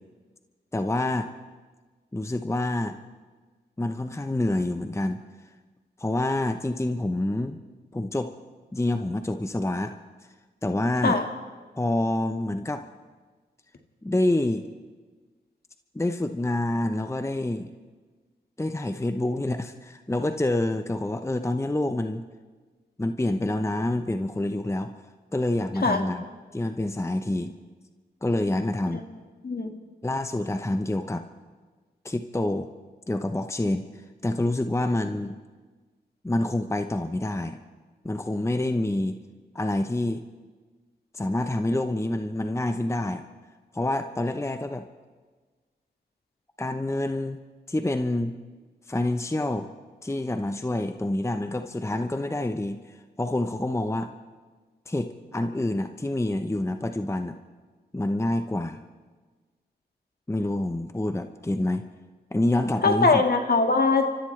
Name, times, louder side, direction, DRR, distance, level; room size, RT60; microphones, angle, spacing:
voice 1, 0.7-1.3 2.1-3.0 3.8-5.2 6.0-7.6 7.9-8.3 8.7-10.0 10.6-11.2 11.8-12.8 14.0-14.7 15.9-17.7 18.6-22.3 23.0-25.0 25.3-26.2 26.5-27.6 28.2-29.0 30.0-31.2 32.0-32.7 33.1-35.3 36.2-37.6 38.0-39.2 39.5-40.2 41.1-43.2 43.7-44.9 46.6-47.4 47.7-48.4 48.9-49.7 50.0-54.1 54.9-57.4 57.9-58.8 60.3-61.8 62.3-63.2, left 1 dB, 15° left, 8 dB, 0.8 m, -27 dB
voice 2, 62.8-64.1, left 3 dB, 55° left, 4 dB, 1.9 m, -21 dB
29.5 x 14.0 x 3.3 m, 1.4 s
cardioid pair, 40°, 19 cm